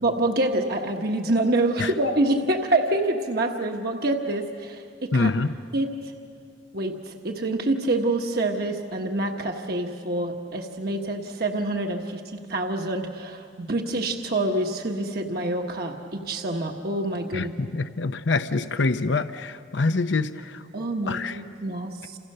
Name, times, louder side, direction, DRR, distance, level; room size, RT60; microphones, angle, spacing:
voice 1, 0.0-5.3 5.7-6.1 6.7-17.5 20.7-22.2, right 2 dB, 55° right, 3 dB, 1.3 m, -26 dB
voice 2, 5.1-5.5 17.3-20.6 21.1-21.4, left 3 dB, 90° left, 10 dB, 0.7 m, -25 dB
29.0 x 28.0 x 6.7 m, 2.3 s
head